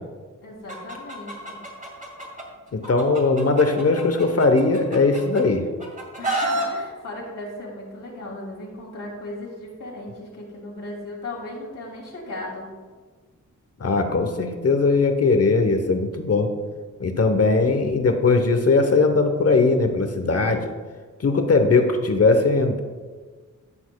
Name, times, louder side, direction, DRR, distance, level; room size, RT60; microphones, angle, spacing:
voice 1, 0.4-1.6 6.2-12.7, left 2 dB, 75° left, -3 dB, 2.8 m, -36 dB
Chicken rooster, 0.7-2.4 2.8-5.4 5.8-6.7, right 1 dB, 25° right, 2.0 m, -29 dB
voice 2, 2.7-5.6 13.8-16.5 17.0-20.7 21.2-22.8, left 3 dB, 50° left, 6 dB, 0.9 m, -19 dB
13.5 x 7.0 x 2.3 m, 1.5 s
wide cardioid pair, 105°, 32 cm